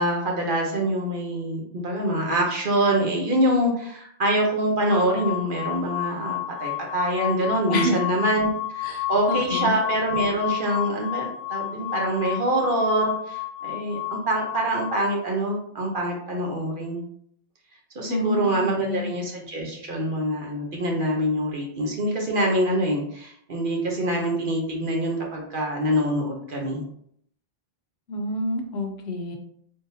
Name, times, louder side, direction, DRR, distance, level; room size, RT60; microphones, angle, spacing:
voice 1, 0.0-17.0 17.9-26.8, right 1 dB, 60° right, -1 dB, 1.0 m, -25 dB
sound 1, 4.9-15.0, left 14 dB, 50° left, 0.5 m, -31 dB
voice 2, 7.7-8.0 8.8-9.7 18.1-19.1 28.1-29.4, left 1 dB, 85° left, 4 dB, 1.0 m, -28 dB
3.7 x 3.5 x 2.7 m, 0.66 s
omnidirectional pair, 1.0 m